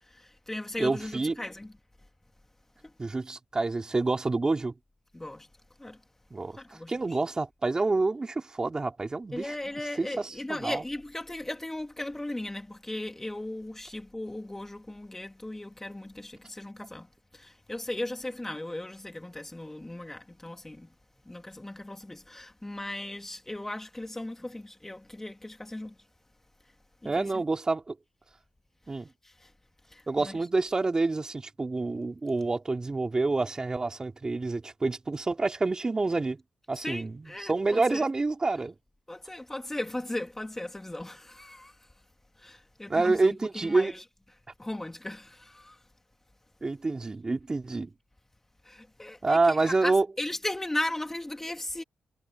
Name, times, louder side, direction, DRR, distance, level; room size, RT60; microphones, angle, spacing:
voice 1, 0.0-1.7 2.8-2.9 5.1-5.5 5.8-6.0 6.5-6.9 9.3-17.1 17.3-20.9 21.3-26.0 27.0-27.4 29.2-29.5 29.9-30.4 36.7-38.0 39.1-41.9 42.4-44.0 44.6-45.8 48.6-51.8, left 1 dB, 15° left, 2.6 m, -37 dB
voice 2, 0.8-1.4 3.0-4.7 6.3-6.6 6.9-9.6 10.0-10.8 27.0-28.0 28.9-29.1 30.1-36.4 36.7-38.7 42.9-43.9 46.6-47.9 49.2-50.1, right 3 dB, 30° right, 3.5 m, -28 dB
cardioid pair, 75°, 2 cm